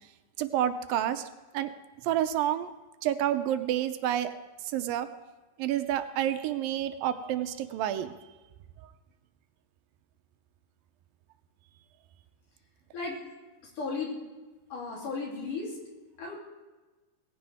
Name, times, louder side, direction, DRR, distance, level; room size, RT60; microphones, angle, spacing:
voice 1, 0.4-1.2 1.5-1.7 2.0-2.7 3.0-4.3 4.6-5.1 5.6-8.1, right 11 dB, 80° right, 9 dB, 2.4 m, -29 dB
voice 2, 13.8-14.1 14.7-15.8 16.2-16.4, left 4 dB, 65° left, -3 dB, 4.5 m, -34 dB
18.5 x 15.0 x 3.5 m, 1.2 s
omnidirectional pair, 4.1 m